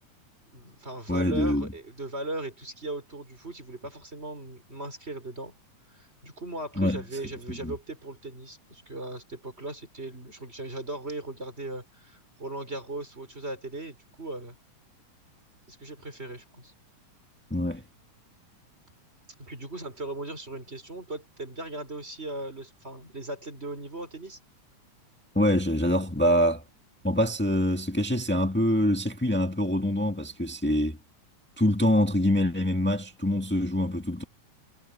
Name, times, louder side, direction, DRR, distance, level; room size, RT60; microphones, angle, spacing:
voice 1, 0.5-5.5 5.9-14.6 15.7-16.7 19.4-24.4, right 2 dB, 20° right, 5.8 m, -38 dB
voice 2, 1.1-1.7 6.8-7.0 7.6-7.7 17.5-17.8 25.3-26.6 27.0-31.0 31.6-34.2, left 1 dB, 10° left, 0.6 m, -25 dB
omnidirectional pair, 3.4 m